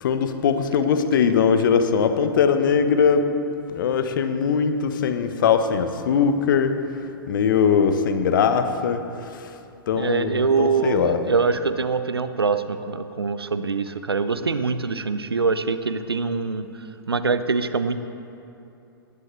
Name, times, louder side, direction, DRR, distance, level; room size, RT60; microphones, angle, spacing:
voice 1, 0.0-3.2 3.7-6.7 7.3-9.0 9.3-9.5 9.9-11.2, left 6 dB, 55° left, 9 dB, 1.1 m, -21 dB
voice 2, 9.9-16.7 17.1-18.0, right 4 dB, 80° right, 12 dB, 0.8 m, -24 dB
19.0 x 15.5 x 3.2 m, 2.7 s
figure-of-eight pair, 110°, 13 cm